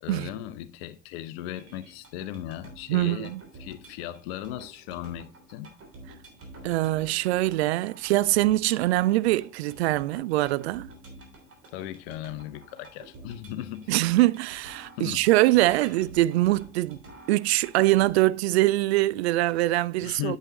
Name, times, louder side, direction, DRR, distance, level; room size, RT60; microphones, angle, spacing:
voice 1, 0.0-3.3 3.6-5.8 11.7-14.0 15.0-15.2 15.8-15.9 20.0-20.4, left 13 dB, 60° left, 0.7 m, -37 dB
sound 1, 1.5-18.1, right 2 dB, 40° right, 3.3 m, -49 dB
voice 2, 2.9-3.4 6.6-10.9 13.9-17.0 17.3-20.4, right 17 dB, 65° right, 0.5 m, -23 dB
8.8 x 6.9 x 3.0 m
figure-of-eight pair, 60°, 35 cm